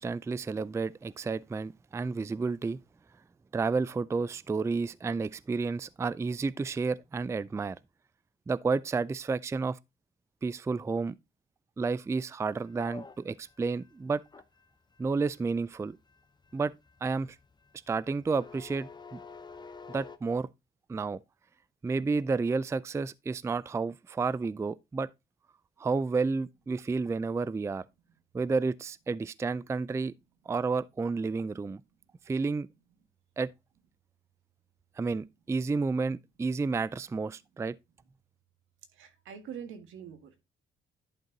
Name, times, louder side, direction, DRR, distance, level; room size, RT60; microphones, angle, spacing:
voice 1, 0.0-2.8 3.5-7.8 8.5-9.8 10.4-11.1 11.8-14.2 15.0-16.0 16.5-16.7 17.0-17.4 17.9-19.2 19.9-20.5 20.9-21.2 21.8-25.1 25.8-27.8 28.3-30.1 30.5-31.8 32.3-32.7 33.4-33.5 35.0-37.7, right 4 dB, 15° right, 0.3 m, -31 dB
sound 1, 12.6-20.2, left 4 dB, 20° left, 0.8 m, -49 dB
voice 2, 38.9-40.4, right 8 dB, 85° right, 1.7 m, -44 dB
11.0 x 4.4 x 3.8 m
cardioid pair, 90°, 20 cm